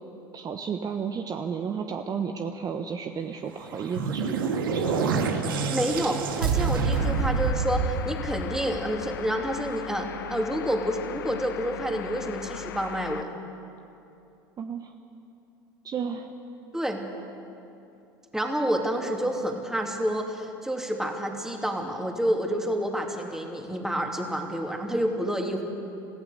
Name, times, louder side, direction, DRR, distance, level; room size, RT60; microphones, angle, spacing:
voice 1, 0.3-5.1 14.6-14.9 15.8-16.3, right 6 dB, 35° right, 5 dB, 1.1 m, -32 dB
sound 1, 3.6-8.9, right 5 dB, 80° right, 1.8 m, -27 dB
voice 2, 5.7-13.3 16.7-17.0 18.3-25.6, equal, 5° right, 2 dB, 2.9 m, -29 dB
sound 2, 6.9-13.2, left 11 dB, 80° left, 0.7 m, -38 dB
26.0 x 15.5 x 6.7 m, 2.7 s
hypercardioid pair, 80°, 11 cm